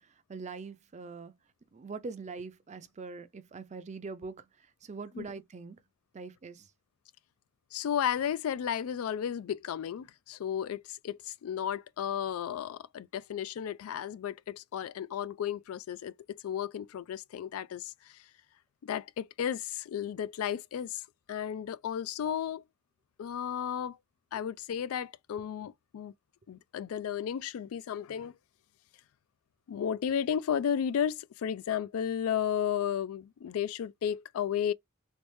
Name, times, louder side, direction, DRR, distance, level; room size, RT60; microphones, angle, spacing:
voice 1, 0.0-1.3 1.7-5.8 6.1-6.7, right 4 dB, 35° right, 0.5 m, -43 dB
voice 2, 7.7-18.2 18.8-21.0 21.3-22.6 23.2-24.0 24.3-26.1 26.5-28.3 29.7-34.7, left 9 dB, 80° left, 0.3 m, -33 dB
3.2 x 3.0 x 3.2 m
head